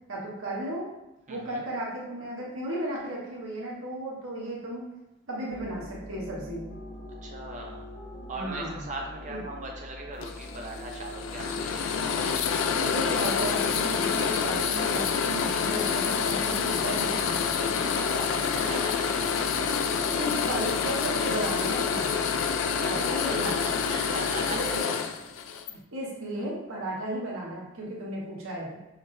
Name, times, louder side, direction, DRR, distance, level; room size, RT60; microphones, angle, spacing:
voice 1, 0.1-0.9 1.3-4.8 5.3-6.6 8.3-8.9 9.3-9.4 12.8-17.4 18.0-18.2 20.2-22.1 22.8-23.6 24.5-24.8 25.7-28.8, right 1 dB, 90° right, -5 dB, 1.1 m, -34 dB
voice 2, 1.3-1.6 7.2-7.9 8.3-12.5 18.2-19.1 22.8-24.6 25.0-25.1, right 2 dB, 35° right, 0 dB, 0.5 m, -40 dB
sound 1, 5.5-24.8, equal, 35° left, 0.7 m, -43 dB
sound 2, 10.2-25.7, left 6 dB, 75° left, 0.3 m, -27 dB
5.7 x 2.0 x 2.6 m, 0.94 s
head